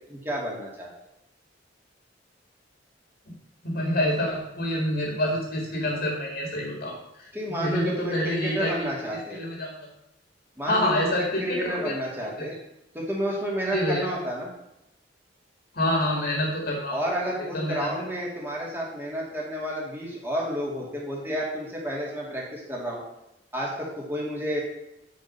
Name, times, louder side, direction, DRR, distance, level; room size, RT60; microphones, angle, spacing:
voice 1, 0.1-0.9 7.3-9.4 10.6-12.5 12.9-14.5 16.9-23.0 23.5-24.6, equal, 15° right, -4 dB, 2.5 m, -31 dB
voice 2, 3.6-8.9 9.3-9.9 10.7-11.9 12.4-12.5 13.7-14.0 15.7-17.0 17.5-17.8, left 1 dB, 60° left, 0 dB, 2.1 m, -27 dB
9.3 x 5.2 x 5.5 m, 0.86 s
head